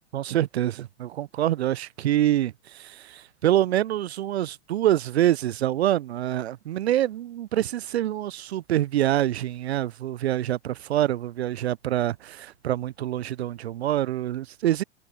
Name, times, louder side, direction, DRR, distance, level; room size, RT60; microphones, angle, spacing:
voice 1, 0.1-14.8, right 13 dB, 80° right, 0.5 m, -26 dB
hypercardioid pair, 105°, 32 cm